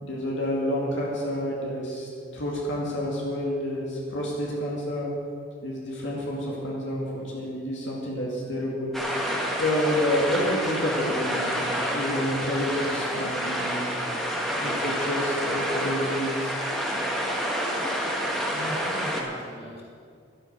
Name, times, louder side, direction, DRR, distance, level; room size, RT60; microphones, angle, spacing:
voice 1, 0.0-5.1 5.6-9.2 9.6-13.9 14.6-16.6, left 1 dB, 70° left, -4 dB, 2.4 m, -29 dB
sound 1, 8.9-19.2, equal, ahead, 1.8 m, -28 dB
voice 2, 18.5-19.8, equal, 35° left, -4 dB, 3.2 m, -39 dB
12.0 x 11.5 x 6.7 m, 2.3 s
head